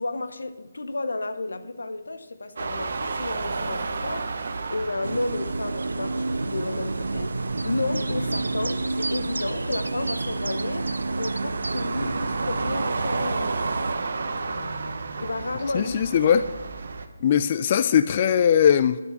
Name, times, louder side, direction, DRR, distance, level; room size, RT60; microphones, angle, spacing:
voice 1, 0.0-13.6 14.3-14.8 15.2-16.4, left 2 dB, 85° left, 0.8 m, -32 dB
sound 1, 2.6-17.1, right 4 dB, 65° right, 1.0 m, -33 dB
sound 2, 5.0-14.0, right 2 dB, 85° right, 0.4 m, -29 dB
voice 2, 15.7-16.4 17.2-19.0, left 8 dB, 35° left, 0.3 m, -20 dB
11.5 x 7.0 x 6.6 m
figure-of-eight pair, 155°, 0 cm